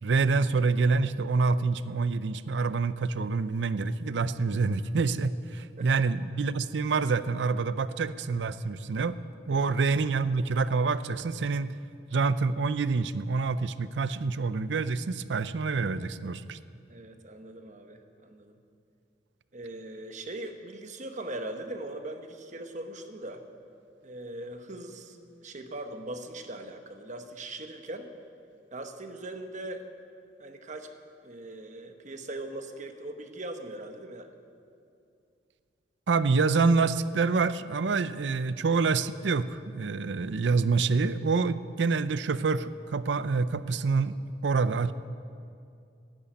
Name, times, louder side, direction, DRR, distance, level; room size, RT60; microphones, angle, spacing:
voice 1, 0.0-9.2 9.5-11.7 12.1-16.6 36.1-44.1 44.4-44.9, right 4 dB, 85° right, 15 dB, 0.5 m, -27 dB
voice 2, 16.9-18.6 19.5-23.4 24.0-28.1 28.7-29.8 30.4-30.9 31.2-34.3, right 1 dB, 45° right, 6 dB, 1.1 m, -40 dB
12.5 x 11.0 x 8.9 m, 2.5 s
head